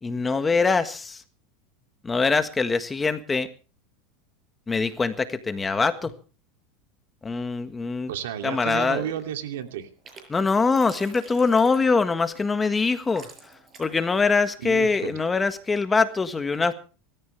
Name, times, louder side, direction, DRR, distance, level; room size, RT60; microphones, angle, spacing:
voice 1, 0.0-1.2 2.0-3.5 4.7-6.1 7.2-8.1 8.4-9.1 10.3-13.3 13.8-16.7, left 4 dB, 15° left, 1.6 m, -23 dB
voice 2, 8.1-9.9 14.6-15.2, right 10 dB, 85° right, 2.7 m, -32 dB
sound 1, 9.4-10.2 10.5-12.1 12.8-12.9 13.1-14.0, right 4 dB, 25° right, 6.6 m, -47 dB
25.0 x 14.0 x 3.4 m
supercardioid pair, 120°, 0 cm